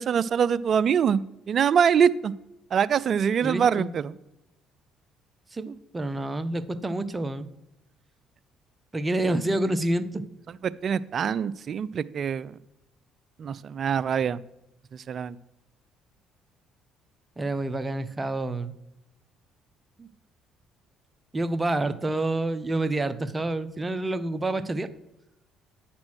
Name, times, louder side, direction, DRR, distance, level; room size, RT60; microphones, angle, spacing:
voice 1, 0.0-2.3 2.7-4.2 10.5-12.6 13.4-14.4 14.9-15.4, right 7 dB, 50° right, 18 dB, 0.3 m, -24 dB
voice 2, 3.4-3.9 5.5-7.5 8.9-10.2 17.4-18.7 20.0-20.1 21.3-24.9, right 2 dB, 25° right, 12 dB, 0.8 m, -28 dB
9.4 x 4.3 x 6.2 m, 0.93 s
hypercardioid pair, 55°, 0 cm